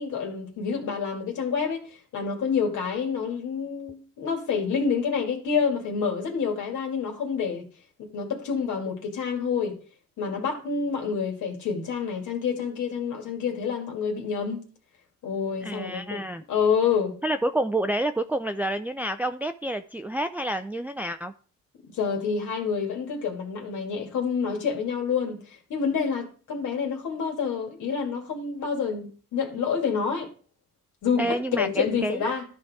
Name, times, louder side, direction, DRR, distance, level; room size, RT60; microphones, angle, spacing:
voice 1, 0.0-7.7 8.0-9.8 10.2-14.6 15.2-16.2 16.5-17.2 21.8-30.3 31.0-32.4, left 6 dB, 75° left, 2.2 m, -28 dB
voice 2, 15.6-16.4 17.2-21.3 31.2-32.2, right 1 dB, 5° right, 0.4 m, -28 dB
13.0 x 4.6 x 3.6 m
cardioid pair, 90°, 30 cm